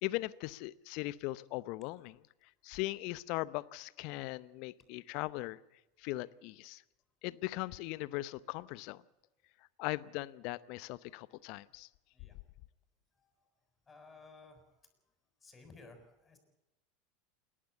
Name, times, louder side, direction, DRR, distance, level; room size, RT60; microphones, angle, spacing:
voice 1, 0.0-2.2 2.6-5.6 6.0-6.8 7.2-9.0 9.8-11.9, left 19 dB, 55° left, 19 dB, 0.7 m, -39 dB
voice 2, 13.1-13.5 13.9-14.9 15.4-16.4, left 3 dB, 20° left, 6 dB, 6.7 m, -57 dB
28.5 x 11.5 x 8.2 m, 0.97 s
hypercardioid pair, 85°, 0 cm